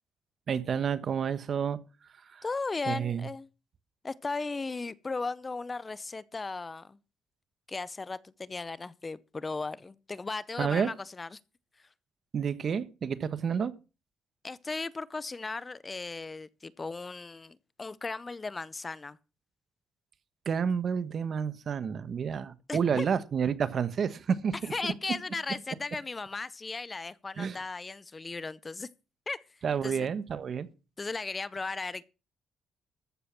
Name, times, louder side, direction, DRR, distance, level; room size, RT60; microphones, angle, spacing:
voice 1, 0.5-1.8 2.3-2.4 2.9-3.2 10.6-10.9 12.3-13.7 20.4-24.7 27.4-27.6 29.6-30.7, right 7 dB, 50° right, 1.2 m, -30 dB
voice 2, 2.4-3.5 4.0-7.0 7.7-11.4 14.4-19.2 22.7-23.1 24.7-28.9 29.3-29.4 29.8-30.1 31.0-32.1, left 3 dB, 25° left, 0.6 m, -36 dB
14.0 x 7.0 x 5.9 m
cardioid pair, 90°, 0 cm